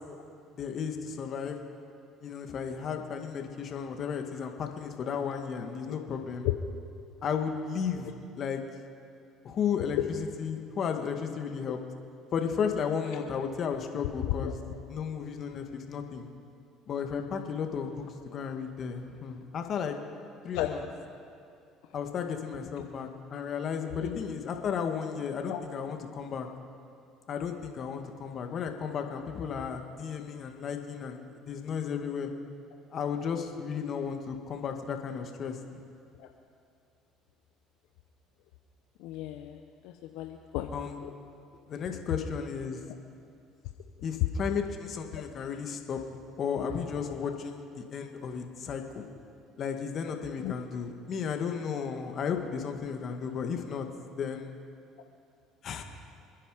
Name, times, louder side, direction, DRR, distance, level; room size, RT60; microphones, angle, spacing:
voice 1, 0.5-1.6 2.2-6.5 7.2-8.6 9.4-11.8 12.3-14.6 14.9-16.3 16.9-20.0 20.4-20.8 21.9-26.5 27.3-32.3 32.9-35.6 40.7-41.0 41.7-42.8 44.0-46.0 46.4-49.1 49.6-53.9 54.2-54.5 55.6-55.8, left 6 dB, 50° left, 4 dB, 2.0 m, -34 dB
voice 2, 39.0-40.7 41.0-41.1 45.1-45.2 50.4-50.5, left 14 dB, 80° left, 4 dB, 0.8 m, -34 dB
28.0 x 10.0 x 5.0 m, 2.4 s
supercardioid pair, 80°, 0 cm